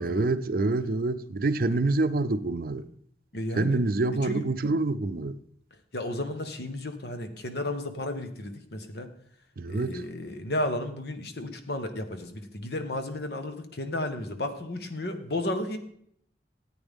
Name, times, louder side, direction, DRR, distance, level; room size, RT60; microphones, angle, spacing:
voice 1, 0.0-2.9 3.5-5.4 9.6-10.0, right 2 dB, 55° right, 0.5 m, -26 dB
voice 2, 1.6-2.0 3.3-3.8 4.2-4.7 5.9-9.1 9.7-15.8, left 1 dB, 65° left, 1.2 m, -33 dB
14.0 x 9.0 x 3.6 m
head